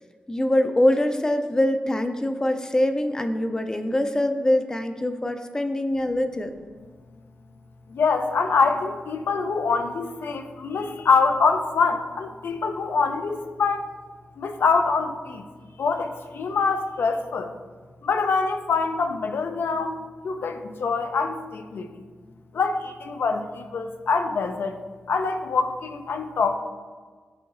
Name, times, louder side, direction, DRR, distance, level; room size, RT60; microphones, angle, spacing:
voice 1, 0.3-6.5, left 1 dB, 15° left, 7 dB, 0.4 m, -23 dB
voice 2, 7.9-13.8 14.4-15.4 15.8-17.6 18.0-22.0 22.5-24.8 25.1-26.6, left 4 dB, 75° left, 7 dB, 0.5 m, -25 dB
11.0 x 3.7 x 2.6 m, 1.5 s
wide cardioid pair, 135°, 4 cm